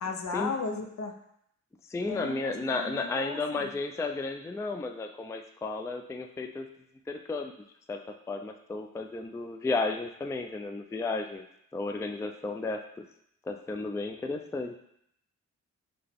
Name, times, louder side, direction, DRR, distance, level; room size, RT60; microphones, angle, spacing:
voice 1, 0.0-1.2 2.0-3.7, left 4 dB, 60° left, 5 dB, 0.6 m, -36 dB
voice 2, 1.9-6.7 7.1-7.5 7.9-11.4 11.7-12.8 13.5-14.7, left 3 dB, 10° left, 5 dB, 0.3 m, -33 dB
3.8 x 3.3 x 3.5 m, 0.74 s
cardioid pair, 55°, 32 cm